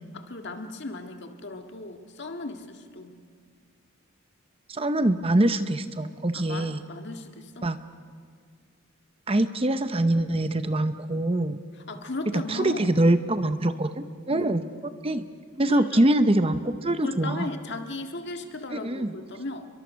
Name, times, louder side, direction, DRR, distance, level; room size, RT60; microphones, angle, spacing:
voice 1, 0.1-3.2 6.3-7.7 11.9-12.9 14.3-14.6 15.7-16.0 16.9-19.6, left 2 dB, 50° left, 5 dB, 1.8 m, -36 dB
voice 2, 4.7-6.8 7.6-7.8 9.3-11.6 12.3-14.6 15.0-15.2 15.6-17.5 18.7-19.1, right 1 dB, 25° right, 10 dB, 0.8 m, -24 dB
30.0 x 23.0 x 6.4 m, 2.1 s
head